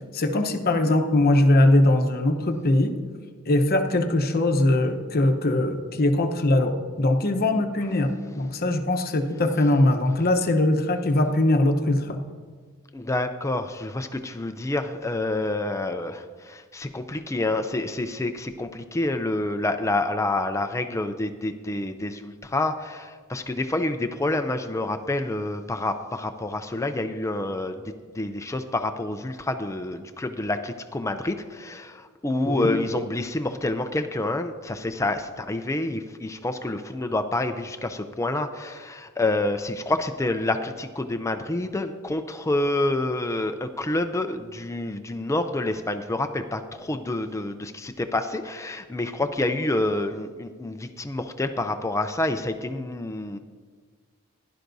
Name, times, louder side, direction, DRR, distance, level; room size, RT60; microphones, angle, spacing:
voice 1, 0.1-2.9 3.5-12.2 32.5-32.8, left 1 dB, 45° left, 6 dB, 0.9 m, -21 dB
voice 2, 12.9-27.8 28.1-53.4, left 2 dB, 15° left, 8 dB, 0.4 m, -28 dB
16.0 x 11.0 x 2.7 m, 1.5 s
head